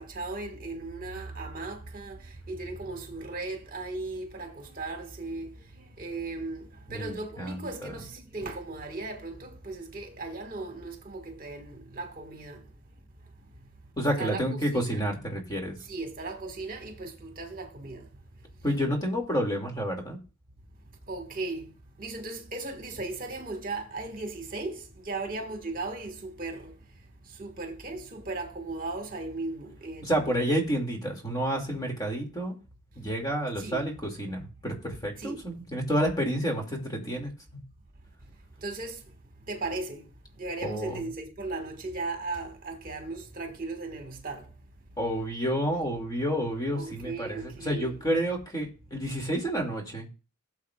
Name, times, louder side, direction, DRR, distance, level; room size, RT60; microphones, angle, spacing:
voice 1, 0.0-12.6 14.2-14.4 14.9-15.1 15.9-18.1 21.1-21.7 22.0-26.7 27.4-30.3 33.6-33.9 35.2-35.4 38.6-39.0 39.5-40.1 40.4-44.5 46.7-48.0, right 3 dB, 40° right, 1.7 m, -37 dB
voice 2, 6.9-7.6 14.0-15.7 18.6-20.2 30.0-32.5 33.0-37.6 40.6-41.0 45.0-50.1, equal, 20° left, 2.4 m, -29 dB
17.5 x 7.4 x 2.4 m
head